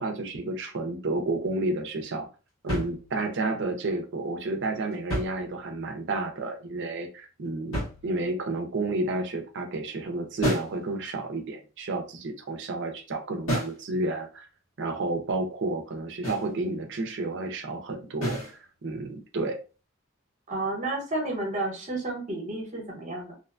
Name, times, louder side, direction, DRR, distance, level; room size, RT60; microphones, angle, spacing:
voice 1, 0.0-2.3 2.6-14.5 14.8-19.6, right 2 dB, 60° right, 5 dB, 0.6 m, -31 dB
sound 1, 2.7-3.5 4.9-5.9 7.7-8.5 10.4-10.8 13.5-13.9 16.2-16.6 18.2-18.6, equal, 70° left, 1.3 m, -32 dB
voice 2, 20.5-23.3, right 2 dB, 35° right, 1 dB, 0.9 m, -31 dB
2.6 x 2.2 x 2.5 m, 0.33 s
head